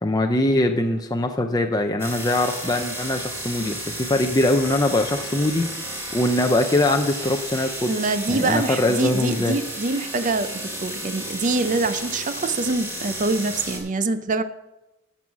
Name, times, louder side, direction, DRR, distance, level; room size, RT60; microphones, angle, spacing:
voice 1, 0.0-5.6 5.9-7.9 8.3-9.6, left 1 dB, 15° left, 4 dB, 0.5 m, -22 dB
sound 1, 2.0-13.8, right 1 dB, 10° right, 2.3 m, -33 dB
voice 2, 7.9-10.5 10.8-14.4, right 3 dB, 35° right, 11 dB, 0.5 m, -24 dB
13.5 x 5.5 x 6.1 m, 0.98 s
head